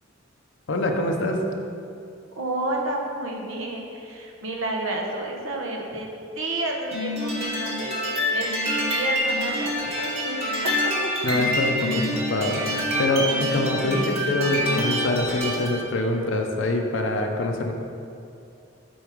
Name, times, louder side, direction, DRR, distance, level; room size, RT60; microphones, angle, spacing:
voice 1, 0.7-1.4 11.2-17.7, left 2 dB, 65° left, 3 dB, 0.6 m, -25 dB
voice 2, 2.4-6.1 6.3-11.1 13.7-14.5, right 2 dB, 85° right, 0 dB, 1.0 m, -31 dB
sound 1, 6.9-15.8, equal, 30° right, 1.4 m, -26 dB
Bowed string instrument, 9.4-14.9, right 4 dB, 50° right, 1.0 m, -42 dB
7.9 x 4.0 x 5.1 m, 2.5 s
head